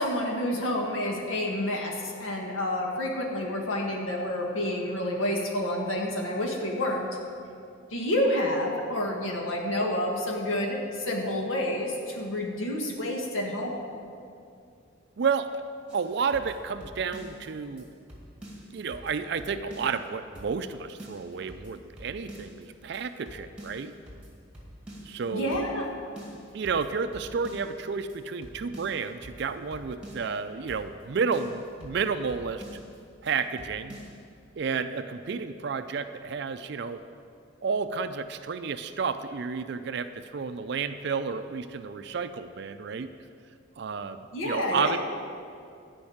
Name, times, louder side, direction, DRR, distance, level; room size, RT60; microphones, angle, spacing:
voice 1, 0.0-7.0 7.9-13.8 25.3-25.9 44.3-45.0, left 1 dB, 85° left, 0 dB, 1.8 m, -29 dB
voice 2, 15.2-15.6 15.9-17.9 18.7-23.9 25.0-25.6 26.5-32.6 33.2-34.0 34.6-37.0 37.6-43.1 43.8-45.0, right 5 dB, 55° right, 10 dB, 0.4 m, -31 dB
sound 1, 15.9-17.5 17.8-17.9 18.1-20.1 20.4-20.7 21.0-22.6 22.9-23.0 23.3-25.2 25.5-25.9 26.2-27.8 28.1-28.2 28.4-30.4 30.7-31.0 31.3-33.0 33.3-33.4 33.6-34.2, equal, 5° right, 1.9 m, -46 dB
12.0 x 5.3 x 8.6 m, 2.4 s
head